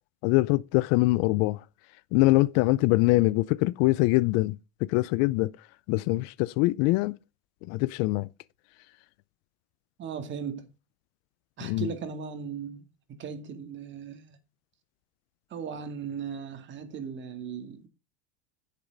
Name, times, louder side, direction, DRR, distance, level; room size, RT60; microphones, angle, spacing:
voice 1, 0.2-1.6 2.1-5.5 5.9-7.2 7.7-8.3 11.6-11.9, left 20 dB, 50° left, 0.5 m, -23 dB
voice 2, 10.0-10.7 11.6-14.4 15.5-17.9, right 6 dB, 35° right, 2.1 m, -37 dB
10.0 x 7.9 x 3.9 m
hypercardioid pair, 110°, 33 cm